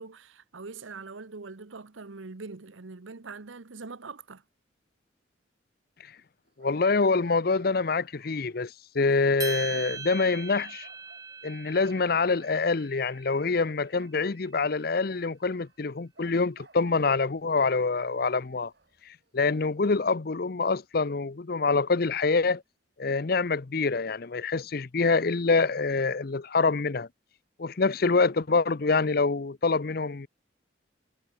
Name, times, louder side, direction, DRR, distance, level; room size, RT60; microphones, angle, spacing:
voice 1, 0.0-4.4, right 4 dB, 85° right, 1.0 m, -43 dB
sound 1, 6.5-8.7 9.5-9.7 10.0-11.4 11.8-12.8 13.3-14.2 14.5-14.8 15.1-15.8 16.1-17.3 17.6-19.3, right 3 dB, 55° right, 3.6 m, -59 dB
voice 2, 6.6-10.9 11.4-18.7 19.1-22.6 23.0-27.1 27.6-30.3, left 4 dB, 50° left, 0.6 m, -26 dB
sound 2, 9.4-13.8, right 5 dB, 20° right, 0.6 m, -40 dB
head